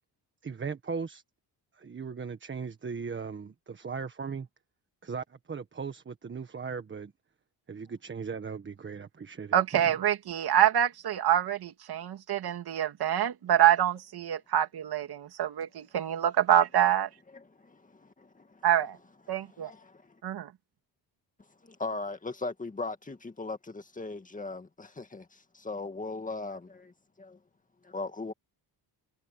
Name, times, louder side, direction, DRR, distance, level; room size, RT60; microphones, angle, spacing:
voice 1, 0.4-1.2 1.7-4.5 5.0-7.1 7.7-10.0, right 5 dB, 30° right, 1.5 m, -38 dB
voice 2, 9.5-17.1 18.6-18.9 19.3-19.7 20.2-20.4, right 11 dB, 65° right, 2.6 m, -26 dB
voice 3, 17.3-17.9 19.5-19.7 21.6-27.4 27.8-28.3, left 3 dB, 20° left, 2.0 m, -38 dB
cardioid pair, 140°, 41 cm